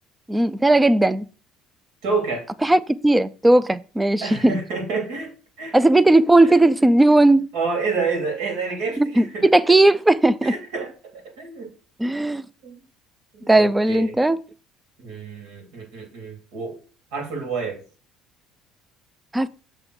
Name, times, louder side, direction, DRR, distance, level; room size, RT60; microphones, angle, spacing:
voice 1, 0.3-1.3 2.6-4.6 5.7-7.5 9.0-10.5 12.0-12.4 13.5-14.4 19.3-19.5, right 2 dB, 5° right, 0.3 m, -17 dB
voice 2, 2.0-2.4 4.2-5.3 5.6-5.8 6.6-6.7 7.5-9.5 10.4-11.7 12.6-12.8 13.3-14.1 15.0-16.7 17.1-17.8, right 4 dB, 80° right, 3.3 m, -28 dB
6.9 x 3.7 x 6.3 m
cardioid pair, 155°, 0 cm